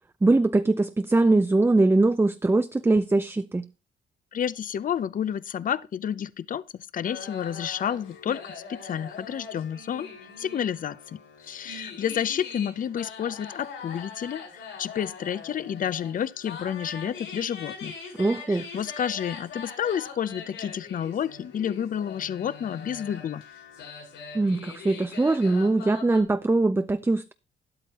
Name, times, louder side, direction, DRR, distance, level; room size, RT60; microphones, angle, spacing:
voice 1, 0.2-3.7 18.2-18.7 24.3-27.3, right 2 dB, 10° right, 0.5 m, -22 dB
voice 2, 4.3-6.6 6.9-10.1 10.4-17.9 18.5-23.4, left 9 dB, 45° left, 0.5 m, -30 dB
sound 1, 7.0-26.2, left 5 dB, 80° left, 6.0 m, -42 dB
12.5 x 11.0 x 3.0 m
cardioid pair, 90°, 20 cm